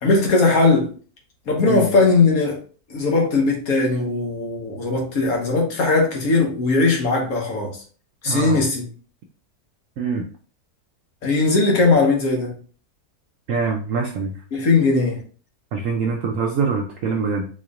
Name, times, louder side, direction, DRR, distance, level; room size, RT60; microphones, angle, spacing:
voice 1, 0.0-0.9 1.5-2.6 2.9-7.7 8.2-8.8 11.2-12.5 14.5-15.2, left 3 dB, 65° left, 1.5 m, -19 dB
voice 2, 8.3-8.7 10.0-10.3 13.5-14.4 15.7-17.5, right 5 dB, 65° right, 0.8 m, -24 dB
4.2 x 3.0 x 2.4 m
omnidirectional pair, 1.6 m